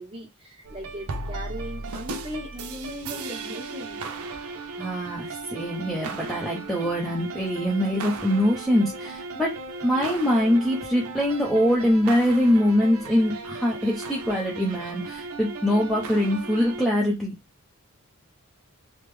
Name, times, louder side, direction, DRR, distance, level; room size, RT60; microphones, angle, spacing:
voice 1, 0.0-4.4, left 1 dB, 25° right, 1.3 m, -38 dB
sound 1, 0.6-16.9, right 3 dB, 70° right, 0.6 m, -36 dB
voice 2, 4.8-9.6 9.8-17.3, equal, ahead, 0.6 m, -23 dB
3.5 x 2.0 x 3.1 m
head